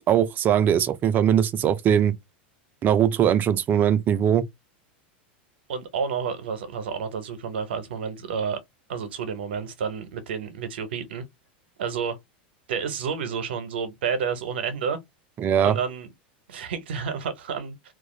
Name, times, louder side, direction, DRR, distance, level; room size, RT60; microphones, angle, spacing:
voice 1, 0.1-2.1 2.8-4.4 15.4-15.8, right 9 dB, 35° right, 0.4 m, -20 dB
voice 2, 5.7-8.6 8.9-11.3 11.8-12.2 12.7-15.0 15.6-16.1 16.5-17.9, right 6 dB, 80° right, 0.7 m, -30 dB
2.3 x 2.0 x 3.1 m
hypercardioid pair, 110°, 6 cm